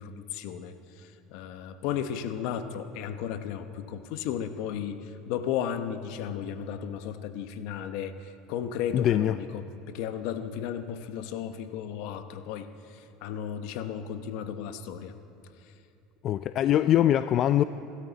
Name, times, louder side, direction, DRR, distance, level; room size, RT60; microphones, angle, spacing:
voice 1, 0.0-15.1, left 9 dB, 70° left, 10 dB, 1.0 m, -34 dB
voice 2, 8.9-9.4 16.2-17.6, left 11 dB, 45° left, 12 dB, 0.3 m, -22 dB
27.0 x 13.0 x 4.0 m, 2.7 s
supercardioid pair, 115°, 0 cm